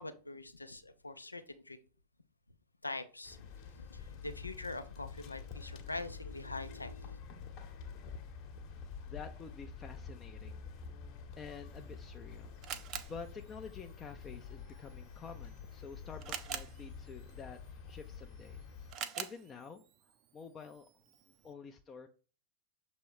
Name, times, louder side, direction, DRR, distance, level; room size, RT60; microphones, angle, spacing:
voice 1, 0.0-1.8 2.8-3.5 3.7-7.2, left 2 dB, 80° left, 0.6 m, -44 dB
sound 1, 3.2-18.9, left 5 dB, 40° left, 1.1 m, -48 dB
voice 2, 8.7-10.9 11.4-12.6 13.1-18.6 19.2-20.9 21.4-22.1, left 6 dB, 25° left, 0.5 m, -49 dB
Camera, 11.7-21.5, right 9 dB, 35° right, 0.5 m, -48 dB
6.9 x 3.1 x 4.6 m
figure-of-eight pair, 90°, 0 cm